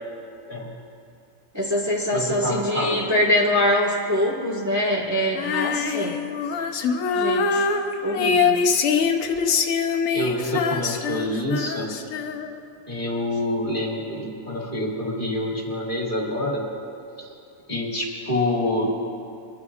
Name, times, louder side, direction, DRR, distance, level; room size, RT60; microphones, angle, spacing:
voice 1, 1.5-6.2 7.1-7.7 8.0-8.6, left 1 dB, 15° right, -4 dB, 1.5 m, -23 dB
voice 2, 2.1-3.0 10.1-11.9 12.9-16.6 17.7-18.9, left 1 dB, 40° left, -4 dB, 2.0 m, -26 dB
Female singing, 5.3-12.7, left 5 dB, 75° left, 1.1 m, -24 dB
22.0 x 12.5 x 2.4 m, 2.6 s
omnidirectional pair, 1.4 m